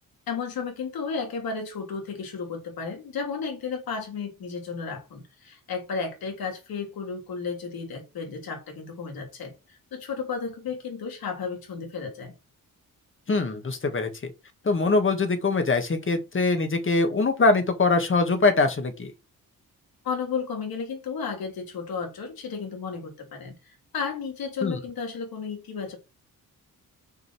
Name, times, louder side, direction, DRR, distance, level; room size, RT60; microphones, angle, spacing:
voice 1, 0.3-12.3 20.0-26.0, left 5 dB, 80° left, 3.4 m, -33 dB
voice 2, 13.3-14.1 14.6-19.1 24.6-24.8, left 3 dB, 35° left, 2.0 m, -23 dB
6.5 x 5.3 x 6.3 m
cardioid pair, 120°, 36 cm